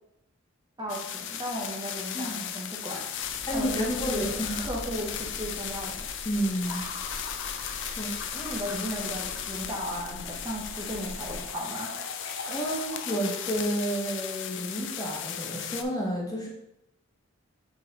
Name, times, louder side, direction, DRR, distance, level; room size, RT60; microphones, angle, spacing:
voice 1, 0.8-4.3 4.6-6.1 6.7-6.8 8.3-11.9, equal, 20° right, -2 dB, 0.9 m, -35 dB
sound 1, 0.9-15.8, left 9 dB, 60° left, 0.5 m, -36 dB
sound 2, 3.2-11.5, equal, ahead, 1.7 m, -44 dB
voice 2, 3.5-4.6 6.2-6.9 7.8-8.1 12.4-16.5, right 1 dB, 20° left, -2 dB, 1.3 m, -31 dB
sound 3, 6.6-13.8, left 2 dB, 80° left, 2.3 m, -44 dB
6.0 x 3.9 x 4.0 m, 0.81 s
head